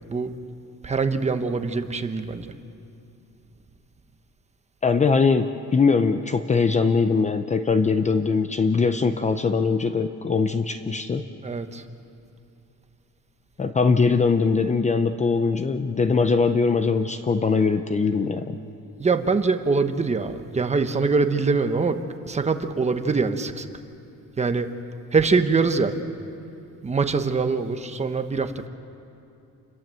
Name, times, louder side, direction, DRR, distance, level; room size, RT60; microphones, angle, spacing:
voice 1, 0.8-2.5 11.4-11.8 19.0-23.7 24.4-24.7 25.1-25.9 26.8-28.7, right 4 dB, 20° right, 7 dB, 1.1 m, -23 dB
voice 2, 4.8-11.3 13.6-18.6, left 4 dB, 20° left, 9 dB, 0.6 m, -21 dB
29.0 x 21.0 x 7.7 m, 2.7 s
cardioid pair, 170°, 32 cm